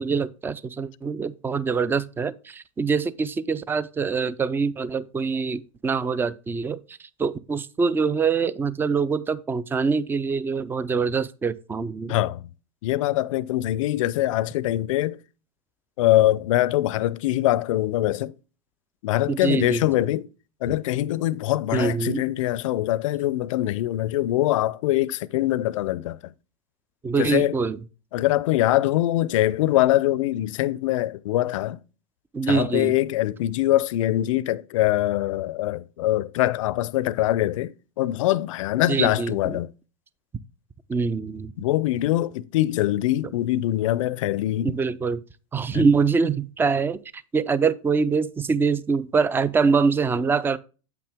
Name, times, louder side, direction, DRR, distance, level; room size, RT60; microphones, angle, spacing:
voice 1, 0.0-6.8 7.2-12.2 19.3-20.1 21.7-22.2 27.0-27.8 32.3-32.9 38.9-39.6 40.9-41.5 44.6-45.2 45.5-50.6, right 5 dB, 10° right, 0.4 m, -24 dB
voice 2, 12.1-12.5 12.8-15.2 16.0-18.3 19.0-20.3 20.6-26.3 27.2-27.6 28.1-31.8 32.4-39.7 41.6-44.8 45.7-45.9, left 15 dB, 70° left, 0.5 m, -23 dB
8.0 x 5.9 x 3.5 m
hypercardioid pair, 110°, 17 cm